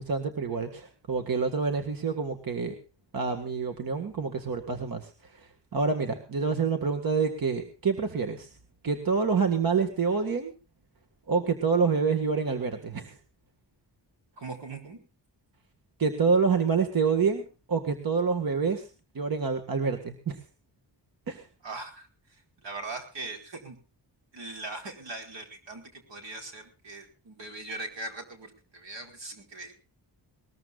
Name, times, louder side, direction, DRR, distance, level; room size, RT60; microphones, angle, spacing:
voice 1, 0.0-2.8 3.1-8.5 8.8-10.5 11.3-13.2 16.0-18.9 19.2-20.4 21.3-21.4, right 5 dB, 50° right, 6 dB, 1.8 m, -27 dB
voice 2, 14.4-15.0 21.6-23.8 24.3-29.7, right 2 dB, 80° right, 4 dB, 4.8 m, -40 dB
21.0 x 20.0 x 2.4 m, 0.33 s
wide cardioid pair, 180°, 43 cm